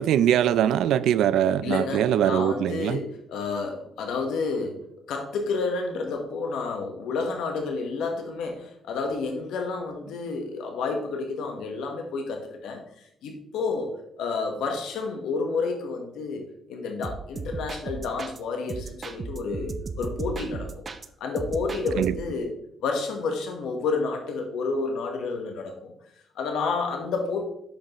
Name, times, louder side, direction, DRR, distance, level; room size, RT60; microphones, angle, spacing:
voice 1, 0.0-3.1 22.0-22.1, right 10 dB, 80° right, 0.3 m, -22 dB
voice 2, 1.6-4.8 5.1-12.8 13.2-16.4 16.7-20.8 21.2-22.5 22.8-25.9 26.3-27.4, left 4 dB, 85° left, 1.2 m, -30 dB
sound 1, 17.0-18.4 18.7-21.1 21.4-22.4, right 4 dB, 40° right, 0.6 m, -36 dB
8.6 x 5.5 x 3.0 m
cardioid pair, 90°, 0 cm